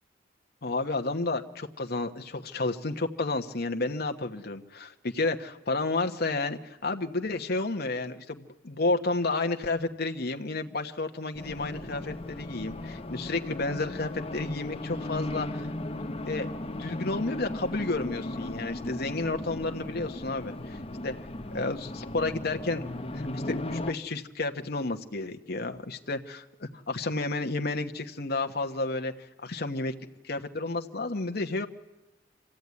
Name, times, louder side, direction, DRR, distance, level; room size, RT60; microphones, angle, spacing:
voice 1, 0.6-15.7 16.2-21.1 21.5-22.9 23.1-29.1 29.4-29.9 30.2-31.7, left 2 dB, 60° left, 6 dB, 1.2 m, -31 dB
Race car auto racing, 11.3-23.9, left 1 dB, 35° left, 1.0 m, -36 dB
25.0 x 15.5 x 9.7 m, 1.1 s
head